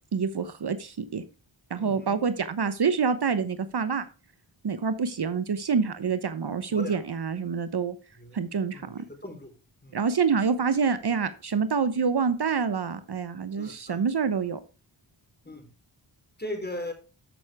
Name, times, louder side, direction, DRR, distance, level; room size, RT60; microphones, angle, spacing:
voice 1, 0.1-1.2 1.7-4.1 4.6-7.9 8.3-9.0 9.9-14.6, right 5 dB, 55° right, 12 dB, 1.1 m, -27 dB
voice 2, 1.8-2.2 6.7-7.0 8.1-8.4 8.7-9.5 9.8-10.0 13.5-14.0 15.4-15.7 16.4-16.9, left 1 dB, 20° left, 4 dB, 4.6 m, -38 dB
13.5 x 6.3 x 3.5 m, 0.33 s
cardioid pair, 45°, 47 cm